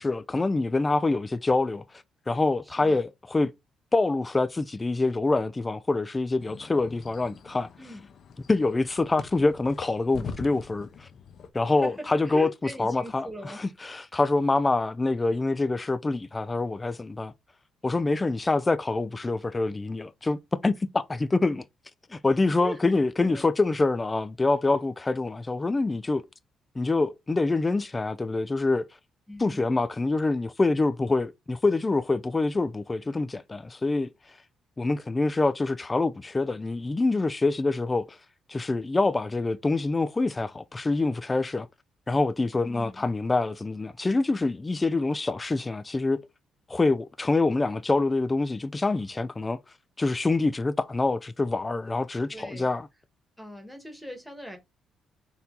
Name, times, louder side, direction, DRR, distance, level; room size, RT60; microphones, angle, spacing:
voice 1, 0.0-1.8 2.3-3.5 3.9-7.7 8.5-11.1 11.5-12.5 12.8-17.3 17.8-21.6 22.1-26.2 26.8-28.9 29.4-34.1 34.8-38.2 38.5-41.7 42.1-46.2 46.7-49.6 50.0-52.9, left 3 dB, 20° left, 0.3 m, -26 dB
voice 2, 2.6-3.0 7.8-8.1 11.8-13.6 22.6-22.8 23.2-23.5 29.3-29.7 42.5-43.1 52.3-52.7 53.4-54.6, equal, ahead, 1.5 m, -40 dB
sound 1, 6.4-11.5, left 5 dB, 60° left, 0.7 m, -43 dB
4.3 x 2.7 x 3.8 m
cardioid pair, 90°, 0 cm